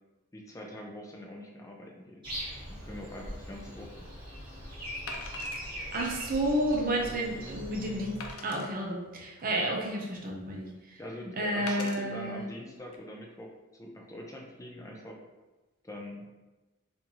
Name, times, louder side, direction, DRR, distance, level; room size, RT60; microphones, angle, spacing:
voice 1, 0.3-2.3 2.7-4.1 11.0-15.2 15.8-16.3, left 1 dB, 15° left, 0 dB, 0.5 m, -43 dB
Breathing, 2.2-8.3, equal, 25° right, 1.3 m, -41 dB
Wood, 3.5-3.6 5.1-5.7 6.3-6.4 6.9-7.0 8.2-8.7 9.5-10.2 11.7-12.0 12.8-13.0, left 4 dB, 85° left, 0.5 m, -43 dB
voice 2, 5.8-8.2 8.4-11.0 11.4-12.4, right 1 dB, 45° right, 0 dB, 0.7 m, -31 dB
4.3 x 2.6 x 2.8 m, 1.1 s
head